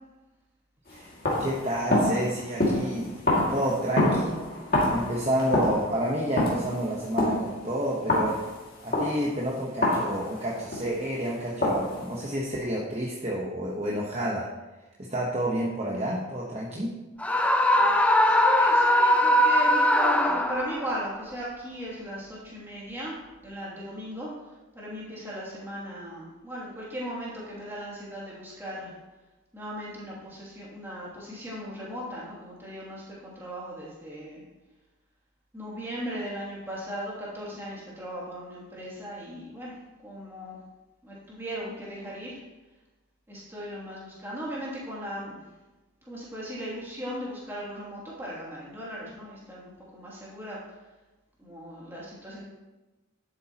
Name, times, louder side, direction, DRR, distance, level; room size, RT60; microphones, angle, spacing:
sound 1, 0.9-11.1 11.6-12.4, left 1 dB, 45° left, 2.3 m, -28 dB
voice 1, 1.4-3.1 3.5-4.4 4.9-8.4 8.8-14.4 15.1-16.9, right 1 dB, 30° right, -5 dB, 1.1 m, -29 dB
Screaming, 17.2-20.9, left 1 dB, 5° left, 0.4 m, -21 dB
voice 2, 18.2-23.2 23.4-24.3 24.7-28.9 29.5-34.4 35.5-39.8 40.0-40.6 41.0-42.4 43.3-45.4 46.1-50.6 51.4-52.5, equal, 10° right, -7 dB, 2.7 m, -37 dB
11.0 x 8.3 x 3.0 m, 1.1 s
head